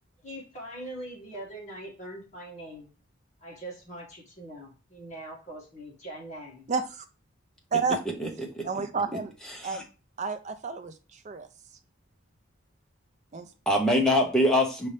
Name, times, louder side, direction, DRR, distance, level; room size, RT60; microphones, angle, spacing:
voice 1, 0.2-2.9 3.4-6.7, right 1 dB, 35° left, -3 dB, 1.7 m, -42 dB
voice 2, 6.7-7.0 7.7-8.0 8.6-9.3 9.6-9.9 10.2-11.5 13.3-13.5, right 5 dB, 35° right, 9 dB, 0.4 m, -30 dB
voice 3, 8.2-8.8 9.1-9.8 13.7-14.9, left 1 dB, 5° left, 0 dB, 0.8 m, -25 dB
5.4 x 2.8 x 3.2 m, 0.33 s
head